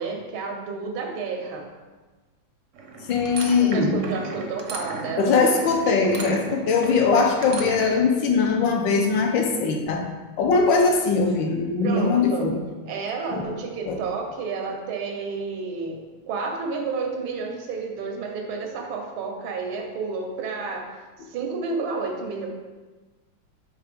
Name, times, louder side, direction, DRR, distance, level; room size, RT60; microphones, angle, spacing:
voice 1, 0.0-1.7 3.6-5.4 11.8-12.5 12.9-22.5, right 4 dB, 90° right, 2 dB, 1.7 m, -31 dB
sound 1, 2.7-8.0, right 3 dB, 65° right, 0.7 m, -36 dB
voice 2, 3.1-4.0 5.2-10.1 10.4-12.6 13.3-13.6 13.9-14.0, left 4 dB, 75° left, 2 dB, 1.4 m, -21 dB
5.7 x 3.7 x 5.0 m, 1.3 s
omnidirectional pair, 2.2 m